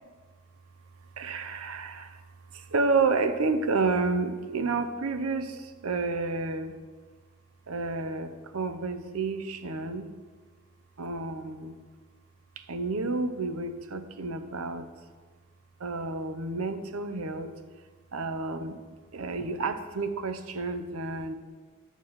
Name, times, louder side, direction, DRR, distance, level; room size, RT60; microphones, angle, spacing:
voice 1, 1.2-2.0 2.7-5.5 5.8-6.7 7.7-8.3 8.5-10.1 11.0-11.7 12.7-14.8 15.8-17.5 18.1-18.7 19.1-21.3, right 3 dB, 90° right, 9 dB, 0.8 m, -30 dB
11.5 x 6.7 x 4.7 m, 1.4 s
head